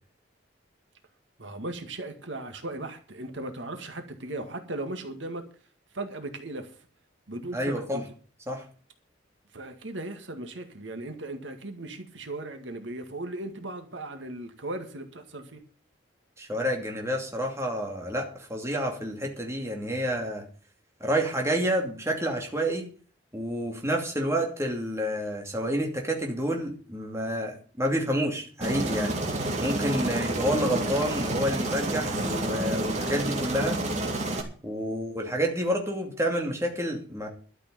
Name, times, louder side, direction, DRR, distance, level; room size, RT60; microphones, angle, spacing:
voice 1, 1.4-5.4 5.9-6.7 7.3-8.1 9.5-15.6, right 2 dB, 75° right, 6 dB, 2.0 m, -37 dB
voice 2, 7.5-8.0 8.5-8.6 16.4-20.4 21.0-22.9 23.3-29.1 29.6-33.8 34.6-37.3, equal, 15° right, 2 dB, 2.5 m, -29 dB
Aircraft, 28.6-34.4, right 1 dB, 35° right, 2.5 m, -29 dB
12.5 x 6.6 x 9.2 m, 0.40 s
head